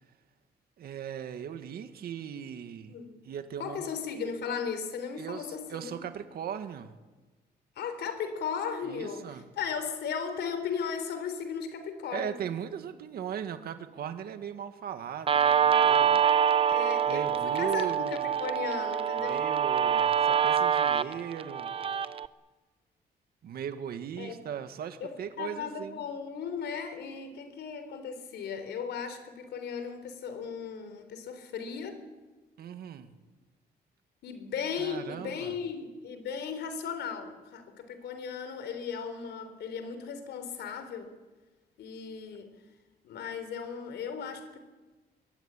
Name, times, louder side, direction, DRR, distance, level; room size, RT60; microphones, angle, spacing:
voice 1, 0.8-2.9 3.2-3.9 5.2-6.9 8.8-9.5 12.1-16.3 17.1-18.3 19.2-21.7 23.4-26.0 32.6-33.1 34.8-35.6, right 8 dB, 65° right, 8 dB, 2.0 m, -38 dB
voice 2, 3.6-6.0 7.8-12.4 16.7-19.4 24.2-24.4 25.0-32.0 34.2-41.1 41.8-42.5 43.0-44.6, left 6 dB, 85° left, 9 dB, 3.8 m, -36 dB
Guitar, 15.3-22.3, right 8 dB, 35° right, 0.7 m, -25 dB
23.0 x 23.0 x 9.1 m, 1.2 s
cardioid pair, 175°, 17 cm